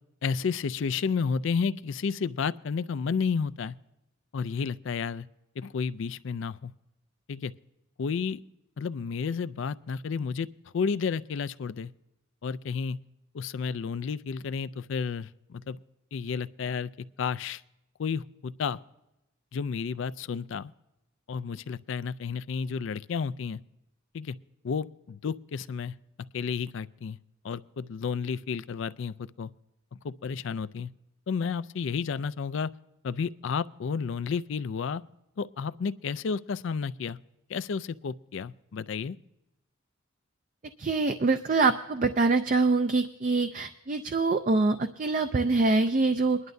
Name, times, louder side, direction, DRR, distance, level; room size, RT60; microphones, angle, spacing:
voice 1, 0.2-3.7 4.3-5.3 5.6-6.7 7.3-7.5 8.0-8.4 8.8-10.5 10.7-11.9 12.4-13.0 13.3-15.8 16.1-16.9 17.2-17.6 18.0-18.8 19.5-20.7 21.3-23.6 24.1-24.4 24.6-25.9 26.3-27.2 27.4-29.5 30.0-30.9 31.3-32.7 33.0-35.0 35.4-37.2 37.5-39.2, left 5 dB, 60° left, 16 dB, 0.4 m, -31 dB
voice 2, 40.8-46.4, right 3 dB, 40° right, 8 dB, 0.4 m, -24 dB
22.0 x 11.0 x 2.6 m, 0.90 s
head